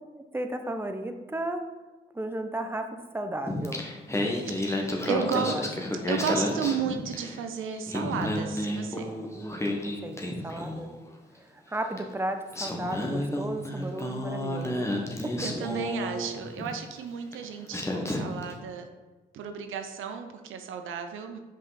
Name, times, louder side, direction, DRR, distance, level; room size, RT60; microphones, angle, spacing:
voice 1, 0.1-1.6 2.1-3.9 5.5-5.7 9.4-10.2 10.4-10.9 11.4-14.9 15.2-15.3, right 1 dB, 10° right, 6 dB, 0.8 m, -34 dB
Singing, 3.5-7.4 7.7-11.0 12.0-12.1 12.5-16.7 17.3-17.4 17.7-18.5, left 1 dB, 15° left, 1.3 m, -31 dB
voice 2, 4.5-5.6 6.1-9.1 15.4-18.9 19.3-21.4, right 7 dB, 75° right, 7 dB, 0.6 m, -33 dB
5.5 x 5.1 x 4.1 m, 1.2 s
supercardioid pair, 45°, 21 cm